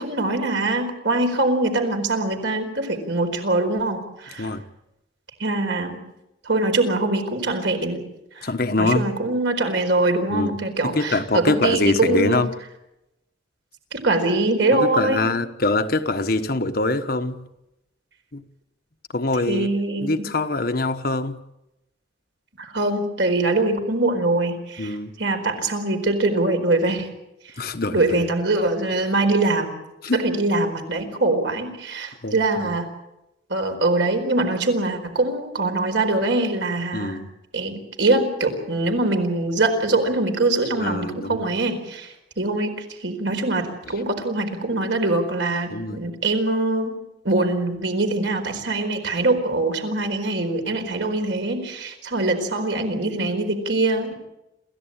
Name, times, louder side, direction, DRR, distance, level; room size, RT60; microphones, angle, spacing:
voice 1, 0.0-4.5 5.4-6.0 6.5-8.0 8.4-8.5 8.8-12.4 13.9-15.2 19.5-20.1 22.6-27.1 27.9-29.7 30.1-32.9 33.5-37.2 37.5-42.7 43.0-46.9 47.2-54.1, right 2 dB, 65° right, 5 dB, 4.4 m, -23 dB
voice 2, 8.4-9.1 10.3-10.6 10.8-12.5 14.8-17.4 18.3-18.4 19.1-19.7 20.0-21.4 24.8-25.1 27.6-28.1 30.0-30.3 32.2-32.4 36.9-37.3 40.8-41.5 43.9-44.0 45.7-46.0, left 2 dB, 50° left, 8 dB, 1.3 m, -24 dB
27.5 x 15.0 x 8.8 m, 0.91 s
head